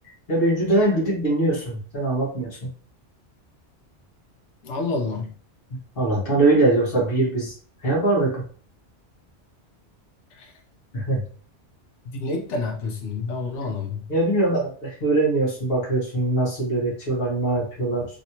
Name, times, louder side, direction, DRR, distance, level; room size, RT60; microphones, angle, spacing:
voice 1, 0.3-2.7 6.0-7.5 7.8-8.4 10.9-11.2 14.1-18.1, right 2 dB, 55° left, 1.5 m, -22 dB
voice 2, 4.6-5.3 10.4-10.5 12.1-14.0, left 3 dB, 85° left, 1.1 m, -28 dB
3.1 x 2.8 x 2.8 m
omnidirectional pair, 1.2 m